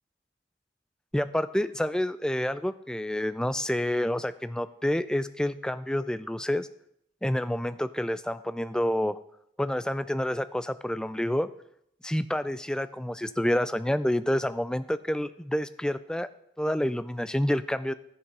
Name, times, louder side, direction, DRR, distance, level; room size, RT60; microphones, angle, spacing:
voice 1, 1.1-6.7 7.2-9.2 9.6-11.5 12.0-16.3 16.6-17.9, left 1 dB, 5° left, 13 dB, 0.3 m, -28 dB
12.5 x 7.0 x 5.3 m, 0.76 s
head